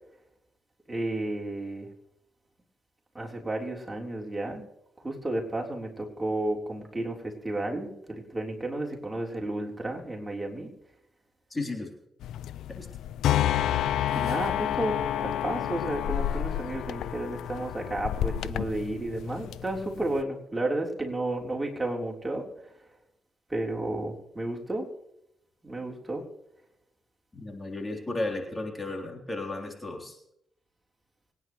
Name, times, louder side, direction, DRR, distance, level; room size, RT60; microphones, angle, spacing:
voice 1, 0.9-1.9 3.1-4.6 5.0-10.7 14.1-22.7 23.5-24.9 25.6-26.2, right 2 dB, 15° right, -1 dB, 3.8 m, -32 dB
voice 2, 11.5-11.9 12.7-12.9 27.3-30.2, left 2 dB, 25° left, 1 dB, 3.5 m, -34 dB
sound 1, 12.2-20.2, left 11 dB, 80° left, 0.4 m, -30 dB
25.5 x 9.9 x 3.2 m, 0.80 s
supercardioid pair, 45°, 0 cm